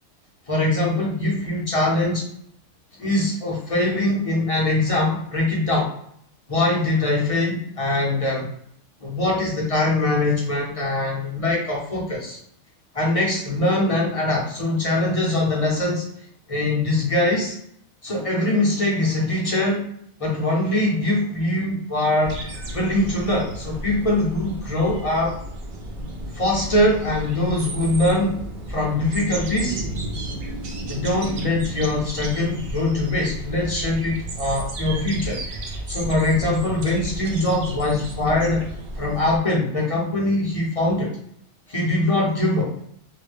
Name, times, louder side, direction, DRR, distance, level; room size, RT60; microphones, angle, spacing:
voice 1, 0.5-2.2 3.0-5.9 6.5-8.5 9.0-12.4 12.9-16.0 16.5-17.6 18.0-19.8 20.2-22.4 22.7-25.4 26.3-28.4 28.7-29.8 30.9-35.4 35.9-38.7 38.9-41.2 41.7-42.7, left 1 dB, 35° left, -3 dB, 0.6 m, -22 dB
sound 1, 22.2-39.4, right 1 dB, 55° right, 0.6 m, -33 dB
3.2 x 2.1 x 3.3 m, 0.69 s
omnidirectional pair, 1.4 m